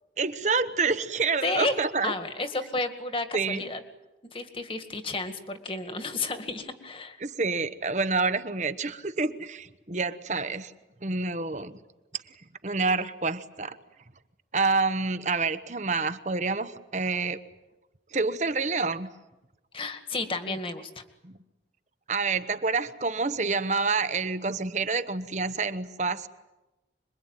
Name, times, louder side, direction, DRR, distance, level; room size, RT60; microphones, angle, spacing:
voice 1, 0.2-2.1 3.3-3.7 7.2-10.7 11.0-11.8 12.6-13.8 14.5-17.4 18.1-19.1 20.5-20.6 21.2-21.4 22.1-26.3, right 4 dB, 40° right, 11 dB, 1.1 m, -28 dB
voice 2, 1.4-1.7 2.0-3.8 4.3-7.2 19.7-21.0, left 3 dB, 30° left, 8 dB, 2.1 m, -32 dB
26.5 x 22.5 x 9.1 m, 1.0 s
head